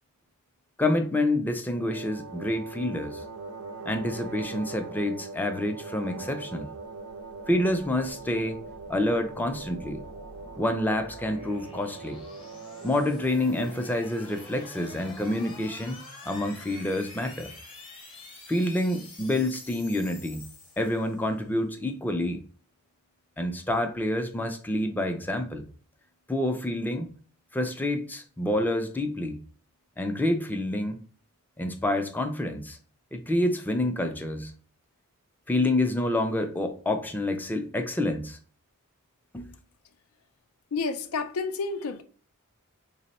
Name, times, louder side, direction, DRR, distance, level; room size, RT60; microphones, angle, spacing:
voice 1, 0.8-3.2 3.8-6.7 7.5-8.6 8.9-10.0 10.6-12.2 12.8-17.5 18.5-20.5 20.8-22.4 23.4-25.6 26.3-27.1 27.5-29.4 30.0-31.0 31.6-32.8 33.1-34.5 35.5-38.4 39.3-39.6, left 1 dB, 10° left, 0.3 m, -28 dB
sound 1, 1.7-13.9, right 3 dB, 90° right, 0.4 m, -41 dB
sound 2, 7.1-21.4, left 2 dB, 25° left, 0.7 m, -48 dB
voice 2, 40.7-42.0, left 4 dB, 90° left, 0.4 m, -30 dB
3.2 x 2.0 x 4.1 m
head